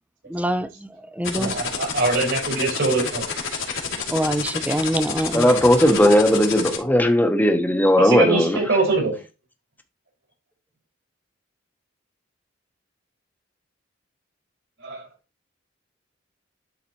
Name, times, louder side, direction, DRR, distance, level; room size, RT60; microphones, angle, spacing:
voice 1, 0.3-1.6 4.1-5.5, right 1 dB, 5° right, 0.6 m, -25 dB
sound 1, 1.2-6.8, left 6 dB, 85° left, 2.7 m, -28 dB
voice 2, 1.3-3.3 8.0-9.2 14.8-15.1, right 3 dB, 70° right, 4.7 m, -23 dB
voice 3, 5.3-8.6, equal, 10° left, 1.0 m, -17 dB
11.5 x 4.1 x 3.0 m
head